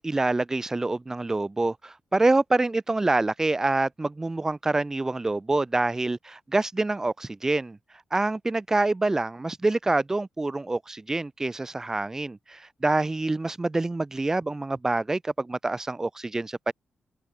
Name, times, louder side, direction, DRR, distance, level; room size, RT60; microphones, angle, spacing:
voice 1, 0.0-7.8 8.1-16.7, right 2 dB, 25° right, 5.6 m, -26 dB
cardioid pair, 60°, 2 cm